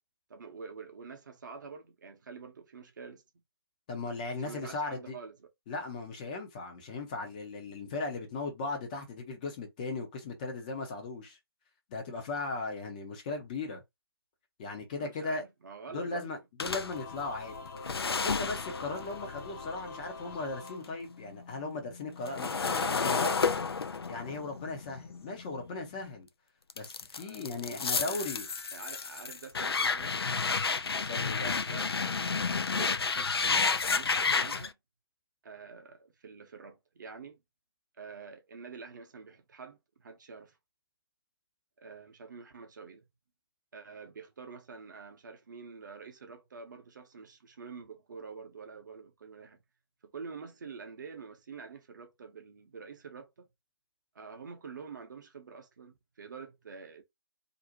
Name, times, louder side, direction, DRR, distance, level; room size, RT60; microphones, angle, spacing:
voice 1, 0.3-3.2 4.4-5.5 15.0-16.3 27.1-28.3 28.7-30.2 31.7-34.8 35.4-37.4 38.0-40.6 41.8-43.0 43.7-49.6 50.1-53.5 54.1-57.0, right 5 dB, 50° right, 0.7 m, -47 dB
voice 2, 3.9-5.2 5.7-11.4 11.9-13.8 14.6-15.4 15.9-17.6 18.1-23.3 24.1-26.3 26.8-28.4 31.0-31.6, left 3 dB, 20° left, 0.5 m, -37 dB
sound 1, 16.6-20.9 21.2-26.1 26.7-34.7, left 5 dB, 75° left, 0.4 m, -31 dB
Singing / Musical instrument, 16.7-21.6, left 3 dB, 50° left, 0.8 m, -45 dB
2.5 x 2.0 x 2.8 m
figure-of-eight pair, 145°, 13 cm